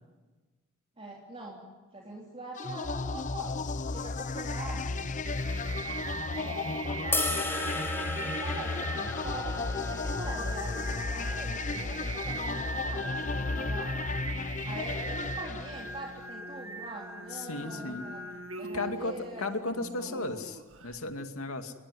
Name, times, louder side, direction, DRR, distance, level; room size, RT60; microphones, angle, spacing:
voice 1, 1.0-1.6 1.9-3.6 3.9-4.8 6.3-7.9 8.1-13.9 14.6-18.3 18.6-20.3, right 1 dB, 30° right, -2 dB, 3.5 m, -43 dB
sound 1, 2.6-16.2, left 3 dB, 35° left, 0.8 m, -34 dB
Singing, 4.7-21.0, right 2 dB, 70° right, 2.0 m, -41 dB
sound 2, 7.1-13.3, left 2 dB, 10° left, 4.8 m, -37 dB
voice 2, 17.3-18.1 18.7-19.1 19.4-21.7, left 2 dB, 90° left, 6 dB, 2.4 m, -35 dB
29.0 x 21.5 x 9.6 m, 1.3 s
head